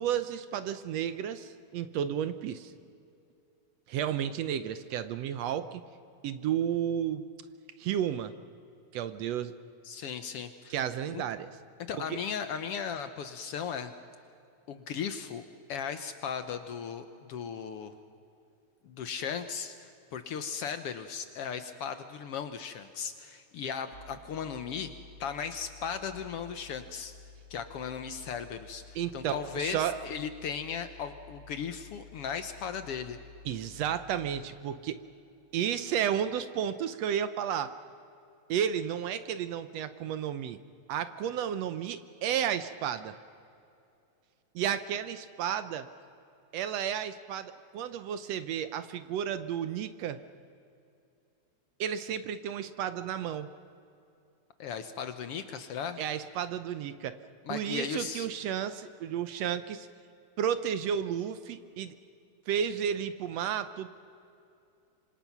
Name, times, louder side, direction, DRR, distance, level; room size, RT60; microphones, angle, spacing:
voice 1, 0.0-2.7 3.9-5.8 6.2-7.2 7.8-8.3 8.9-9.5 10.7-11.5 12.1-12.2 29.0-30.0 33.5-35.0 35.5-37.7 38.5-40.6 40.9-43.2 44.6-45.9 46.5-50.2 51.8-53.5 56.0-57.2 57.5-59.9 60.4-61.9 62.5-63.9, right 9 dB, 70° right, 12 dB, 1.7 m, -32 dB
voice 2, 9.8-10.7 11.1-11.2 11.9-13.9 14.7-15.4 15.7-17.9 18.8-24.9 25.2-27.1 27.5-33.2 54.6-56.0 57.5-58.3, left 7 dB, 65° left, 9 dB, 1.6 m, -37 dB
sound 1, 23.9-34.4, left 4 dB, 40° right, 1.6 m, -52 dB
26.5 x 25.5 x 6.0 m, 2.6 s
omnidirectional pair, 3.3 m